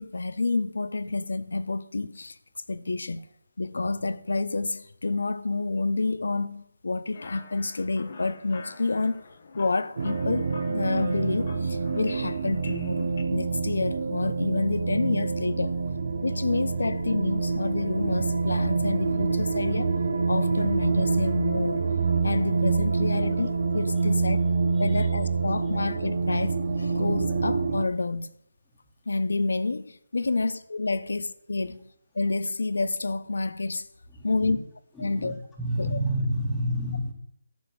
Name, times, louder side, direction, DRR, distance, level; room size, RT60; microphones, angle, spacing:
voice 1, 0.0-2.4 2.7-3.3 3.6-9.2 9.6-15.8 16.2-20.0 20.3-21.8 22.2-24.5 24.8-28.3 29.1-31.9 32.1-33.9 34.2-34.6 35.0-35.3 35.8-36.0, left 3 dB, 75° left, 0.7 m, -29 dB
sound 1, 7.1-13.2, left 4 dB, 45° left, 1.1 m, -45 dB
sound 2, 10.0-27.8, right 4 dB, 50° right, 1.1 m, -26 dB
voice 2, 24.7-25.1 34.2-34.6 34.9-37.1, equal, 5° left, 1.5 m, -30 dB
11.5 x 5.2 x 6.2 m
figure-of-eight pair, 165°, 0 cm